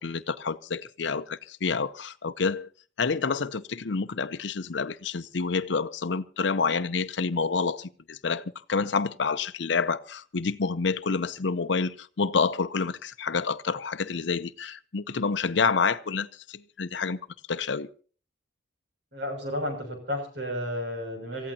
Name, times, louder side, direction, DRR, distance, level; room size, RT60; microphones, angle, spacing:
voice 1, 0.0-2.7 3.0-8.4 8.7-17.2 17.5-17.9, left 5 dB, 70° left, 0.6 m, -28 dB
voice 2, 19.1-21.5, left 1 dB, 65° right, 6.6 m, -32 dB
27.0 x 15.0 x 2.8 m
head